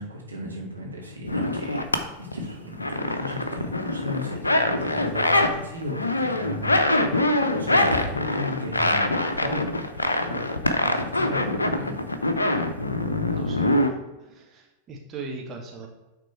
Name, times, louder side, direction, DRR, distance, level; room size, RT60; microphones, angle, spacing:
voice 1, 0.0-1.9 2.2-10.4 10.8-12.0, left 1 dB, 80° right, -3 dB, 1.9 m, -35 dB
sound 1, 1.3-2.0 2.3-5.5 5.8-13.9, left 2 dB, 80° left, 0.6 m, -24 dB
voice 2, 13.3-13.9 14.2-15.9, right 4 dB, 30° right, 1 dB, 1.2 m, -39 dB
8.9 x 3.7 x 4.5 m, 1.1 s
figure-of-eight pair, 90°, 0 cm